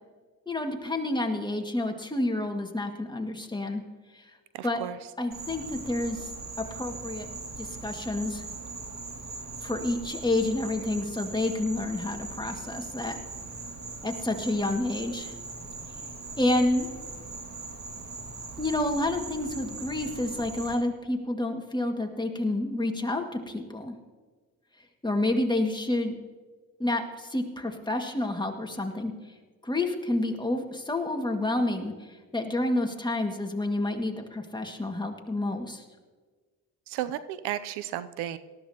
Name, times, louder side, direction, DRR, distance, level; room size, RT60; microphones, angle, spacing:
voice 1, 0.5-3.8 4.1-4.3 4.6-4.8 5.2-6.3 6.7-7.3 7.6-8.4 9.6-13.2 14.0-15.3 16.4-16.9 18.6-23.9 25.0-26.2 26.8-29.1 29.6-35.8, left 2 dB, 10° left, 3 dB, 1.9 m, -29 dB
voice 2, 4.5-5.0 36.9-38.4, right 12 dB, 85° right, 13 dB, 0.6 m, -33 dB
Insect, 5.3-20.7, right 3 dB, 45° right, 2.1 m, -40 dB
18.5 x 13.5 x 2.9 m, 1.4 s
supercardioid pair, 60°, 39 cm